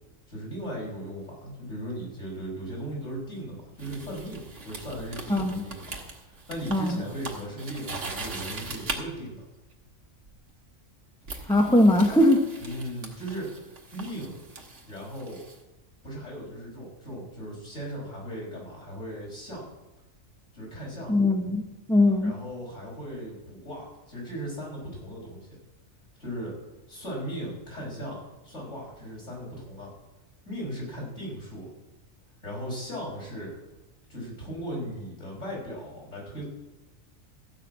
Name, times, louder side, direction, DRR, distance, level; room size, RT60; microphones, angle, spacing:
voice 1, 0.3-9.4 12.6-14.4 14.9-15.4 16.0-19.7 20.5-21.1 22.2-25.5 26.2-26.5 26.9-29.9 30.5-31.7 32.4-33.5 34.1-36.4, equal, 60° left, -4 dB, 5.9 m, -37 dB
sound 1, 3.8-9.0 10.3-10.5 11.3-15.6, right 3 dB, 60° right, 2.0 m, -40 dB
voice 2, 5.3-5.6 6.7-7.0 11.5-12.4 21.1-21.6 21.9-22.4, left 1 dB, 5° left, 3 dB, 1.0 m, -20 dB
15.0 x 5.9 x 8.4 m, 1.1 s
omnidirectional pair, 1.4 m